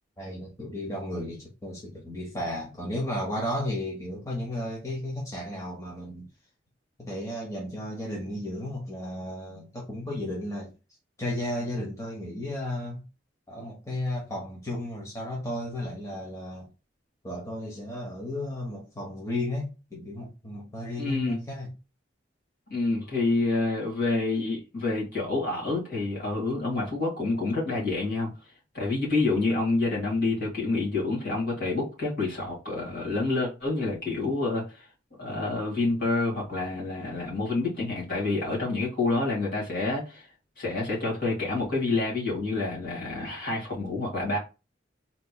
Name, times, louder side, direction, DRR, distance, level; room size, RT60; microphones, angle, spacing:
voice 1, 0.2-6.3 7.0-10.7 11.2-13.0 13.5-16.7 17.2-21.7, left 1 dB, 15° left, 0.9 m, -34 dB
voice 2, 21.0-21.4 22.7-28.3 28.7-34.9 35.2-40.3 40.6-44.4, left 3 dB, 50° left, 2.0 m, -28 dB
4.2 x 3.0 x 2.3 m
head